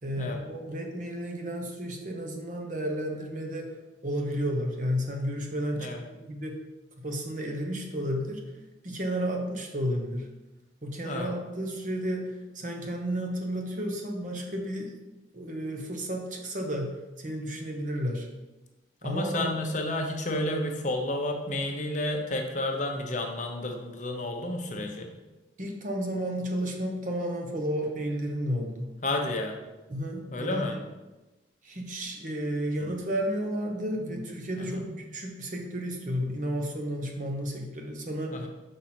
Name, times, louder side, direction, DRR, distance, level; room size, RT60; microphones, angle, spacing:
voice 1, 0.0-3.7 4.0-5.9 6.3-6.6 7.0-8.4 8.8-10.3 10.8-14.9 15.3-18.3 19.0-19.5 20.4-20.5 25.6-28.9 29.9-30.8 31.6-34.8 35.1-38.5, equal, 40° right, 2 dB, 0.9 m, -32 dB
voice 2, 19.0-25.1 29.0-29.5 30.3-30.7 34.6-34.9 38.3-38.5, left 1 dB, 40° left, 3 dB, 0.7 m, -31 dB
5.0 x 4.4 x 5.9 m, 1.1 s
head